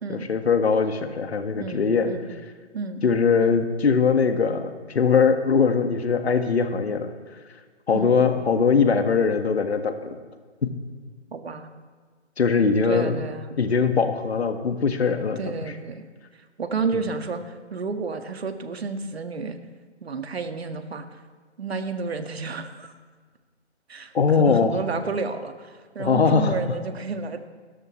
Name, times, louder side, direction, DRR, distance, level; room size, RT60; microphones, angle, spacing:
voice 1, 0.1-2.1 3.0-7.1 7.9-10.2 12.4-13.1 13.6-15.4 24.1-24.8 26.0-26.6, left 5 dB, 60° left, 7 dB, 1.7 m, -21 dB
voice 2, 1.6-2.3 2.7-3.0 7.9-8.1 11.3-11.7 12.8-13.6 15.4-16.1 16.6-19.6 20.0-21.2 21.6-22.9 23.9-27.5, right 4 dB, 60° right, 7 dB, 1.7 m, -31 dB
28.5 x 13.5 x 3.2 m, 1.5 s
figure-of-eight pair, 155°, 35 cm